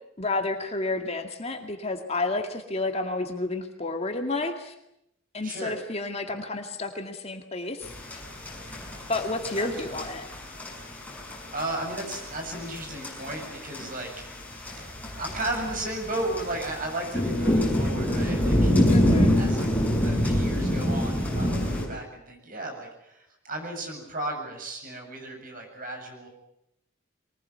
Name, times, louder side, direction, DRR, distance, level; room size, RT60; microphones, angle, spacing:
voice 1, 0.2-4.7 5.3-8.2 9.1-10.2 18.9-19.3, left 2 dB, 30° left, 5 dB, 2.1 m, -30 dB
voice 2, 5.4-5.8 9.6-10.0 11.5-14.1 14.5-14.8 15.2-18.8 19.4-19.7 20.0-26.3, right 1 dB, 45° right, 2 dB, 7.7 m, -35 dB
sound 1, 7.8-21.9, equal, 10° left, 6.5 m, -27 dB
23.5 x 20.0 x 9.5 m, 0.80 s
head